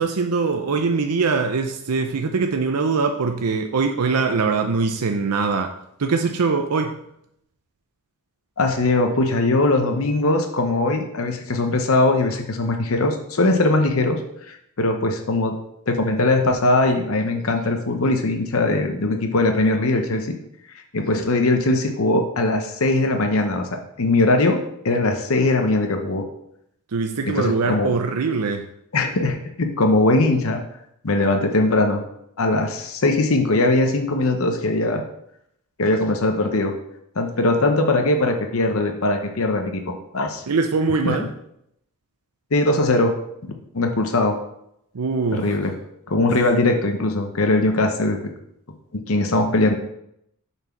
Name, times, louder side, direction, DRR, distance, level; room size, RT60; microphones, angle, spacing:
voice 1, 0.0-7.0 26.9-28.7 40.5-41.3 44.9-45.6, right 4 dB, 90° right, 5 dB, 0.6 m, -22 dB
voice 2, 8.6-14.2 14.8-15.6 15.9-20.3 20.9-26.2 27.2-27.9 28.9-30.6 31.0-32.0 32.4-35.0 35.8-36.8 37.2-40.4 41.0-41.2 42.5-43.1 43.4-44.4 45.3-45.7 46.1-48.2 48.9-49.7, left 2 dB, 65° left, 4 dB, 0.8 m, -20 dB
6.7 x 4.5 x 5.9 m, 0.76 s
head